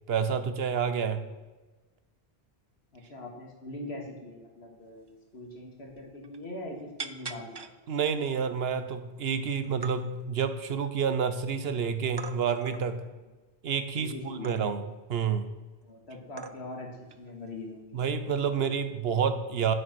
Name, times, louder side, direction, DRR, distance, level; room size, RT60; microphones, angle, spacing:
voice 1, 0.1-1.2 7.9-13.0 13.6-14.8 15.1-15.5 17.9-19.7, right 6 dB, 70° right, 11 dB, 1.0 m, -29 dB
voice 2, 2.9-7.6 14.0-14.6 15.8-18.0, left 2 dB, 85° left, 1 dB, 2.4 m, -42 dB
sound 1, 5.1-5.2 5.5-5.6 5.9-6.4 7.0-7.7 8.3-8.4 8.8-9.4 9.6-10.0 10.5-11.4 12.2-12.9 14.4-14.9 15.8-15.9 16.4-16.8 17.1-17.3 18.4-18.7, right 5 dB, 35° right, 0.4 m, -42 dB
9.4 x 7.8 x 6.0 m, 1.2 s
omnidirectional pair, 1.1 m